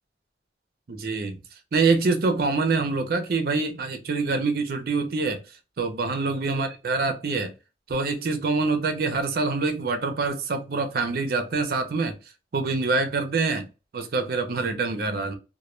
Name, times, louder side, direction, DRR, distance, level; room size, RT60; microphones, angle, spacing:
voice 1, 0.9-1.4 1.7-5.4 5.8-7.5 7.9-12.2 12.5-13.7 13.9-15.4, right 3 dB, 55° right, 0.5 m, -25 dB
2.1 x 2.1 x 3.0 m
head